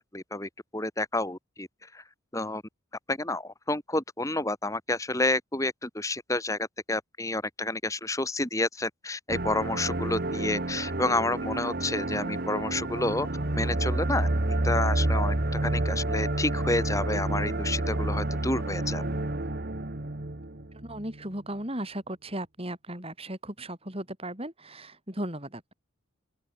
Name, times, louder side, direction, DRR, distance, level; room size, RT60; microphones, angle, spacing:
voice 1, 0.0-1.7 1.9-2.0 2.3-2.6 3.1-13.3 13.5-14.3 14.6-15.3 15.6-19.0, left 2 dB, 15° left, 2.7 m, -30 dB
sound 1, 9.3-21.2, right 1 dB, 45° right, 1.4 m, -29 dB
voice 2, 20.7-25.7, right 1 dB, 25° right, 7.8 m, -36 dB
open air
head